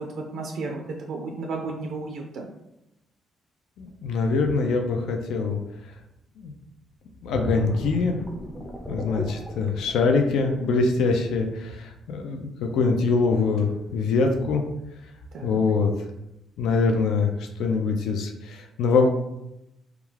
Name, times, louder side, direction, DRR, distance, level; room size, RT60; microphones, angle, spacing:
voice 1, 0.0-2.5 15.3-15.6, right 3 dB, 70° right, 1 dB, 0.3 m, -33 dB
voice 2, 3.8-5.6 6.4-6.5 7.2-8.2 8.9-14.6 15.4-15.9 16.6-17.3 17.6-19.1, left 4 dB, 85° left, 3 dB, 0.3 m, -23 dB
sound 1, 7.3-10.9 11.3-11.6, right 1 dB, 5° left, 0.5 m, -34 dB
2.3 x 2.3 x 3.1 m, 0.89 s
cardioid pair, 90°, 0 cm